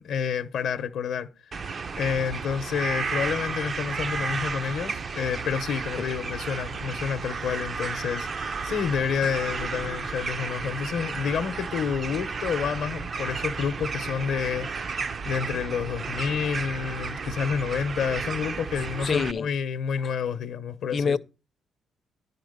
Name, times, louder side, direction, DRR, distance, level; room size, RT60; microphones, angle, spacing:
voice 1, 0.0-1.5 1.9-21.2, left 7 dB, 75° left, 0.7 m, -29 dB
sound 1, 1.5-19.3, right 5 dB, 40° right, 0.5 m, -33 dB
voice 2, 19.0-19.5 20.9-21.2, left 5 dB, 45° left, 0.5 m, -26 dB
10.5 x 4.3 x 6.5 m
cardioid pair, 90°, 0 cm